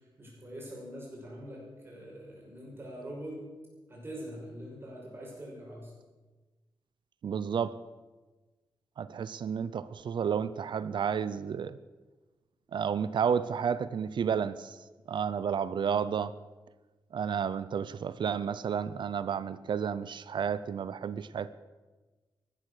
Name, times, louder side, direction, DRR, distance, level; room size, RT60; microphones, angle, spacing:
voice 1, 0.2-3.4 3.9-5.9, equal, 25° right, -3 dB, 6.0 m, -43 dB
voice 2, 7.2-7.8 9.0-11.8 12.7-14.8 15.1-16.3 17.1-21.5, right 7 dB, 60° right, 15 dB, 0.6 m, -31 dB
15.0 x 12.5 x 6.5 m, 1.2 s
wide cardioid pair, 150°, 9 cm